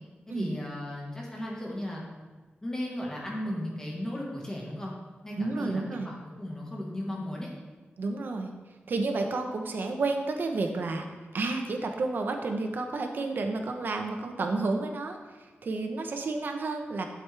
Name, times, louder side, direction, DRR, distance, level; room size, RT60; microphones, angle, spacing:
voice 1, 0.3-2.2 2.6-4.9 5.2-7.5, left 1 dB, 15° left, -3 dB, 1.6 m, -36 dB
voice 2, 5.4-6.1 8.0-8.5 8.9-11.1 11.3-15.2 15.6-17.0, right 3 dB, 60° right, 4 dB, 1.0 m, -30 dB
11.5 x 7.8 x 3.5 m, 1.3 s
wide cardioid pair, 160°, 4 cm